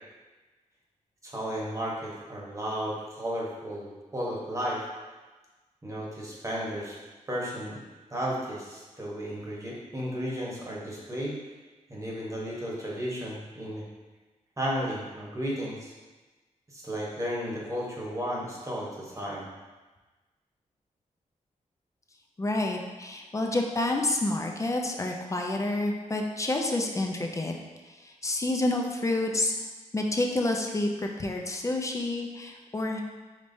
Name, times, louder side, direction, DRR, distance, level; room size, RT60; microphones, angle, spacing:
voice 1, 1.2-4.8 5.8-7.0 7.3-7.8 8.1-11.4 11.9-13.8 14.6-15.9 16.7-19.5, equal, 25° right, -5 dB, 1.1 m, -33 dB
voice 2, 22.4-27.6 27.9-29.6 29.9-33.0, left 2 dB, 25° left, 2 dB, 0.5 m, -29 dB
5.1 x 3.2 x 2.6 m, 1.2 s
wide cardioid pair, 100°, 13 cm